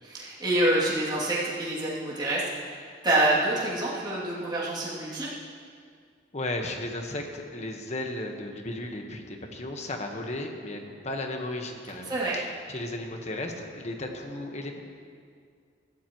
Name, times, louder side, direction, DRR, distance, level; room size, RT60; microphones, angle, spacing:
voice 1, 0.0-5.3 12.1-12.4, right 1 dB, 25° right, -9 dB, 2.8 m, -27 dB
voice 2, 6.3-14.8, left 1 dB, 40° left, 3 dB, 1.3 m, -35 dB
20.0 x 13.5 x 3.1 m, 2.1 s
head